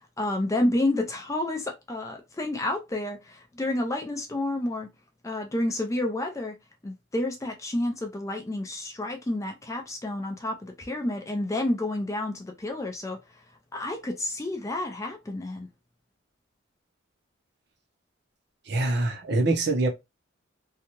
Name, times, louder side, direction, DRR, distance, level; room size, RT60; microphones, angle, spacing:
voice 1, 0.2-4.9 5.2-6.6 6.8-13.2 13.7-15.7, left 1 dB, 15° left, 0.4 m, -30 dB
voice 2, 18.7-19.9, right 2 dB, 55° right, 0.7 m, -24 dB
2.7 x 2.3 x 2.9 m
head